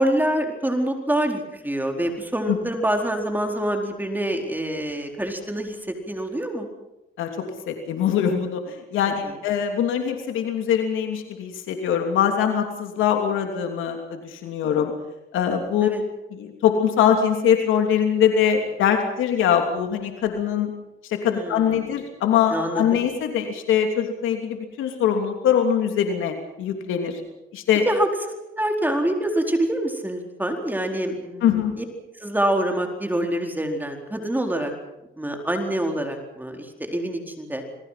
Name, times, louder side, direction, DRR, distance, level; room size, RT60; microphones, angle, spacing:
voice 1, 0.0-6.7 9.0-9.3 15.8-16.0 21.3-21.7 22.5-23.0 27.8-31.8 32.2-34.7 35.2-37.6, right 1 dB, 10° right, 3 dB, 4.4 m, -26 dB
voice 2, 7.7-14.9 15.3-15.9 16.4-20.7 21.1-27.2 27.5-27.8 31.4-31.7, left 8 dB, 85° left, 4 dB, 3.1 m, -22 dB
28.0 x 21.5 x 5.9 m, 0.93 s
cardioid pair, 90°, 20 cm